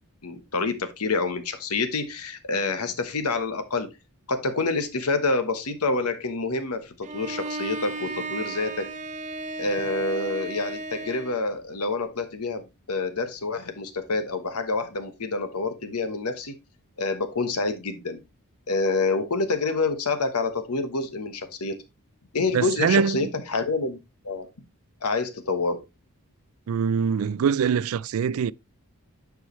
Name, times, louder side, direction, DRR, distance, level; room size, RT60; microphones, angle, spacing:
voice 1, 0.2-3.9 4.3-8.9 9.6-16.5 17.0-18.2 18.7-21.8 22.3-24.0 24.2-24.5 25.0-25.8, left 3 dB, 85° left, 1.2 m, -27 dB
Bowed string instrument, 7.0-11.4, right 3 dB, 35° right, 0.7 m, -34 dB
voice 2, 22.5-23.3 26.7-28.5, right 7 dB, 70° right, 0.3 m, -23 dB
9.4 x 4.9 x 3.1 m
head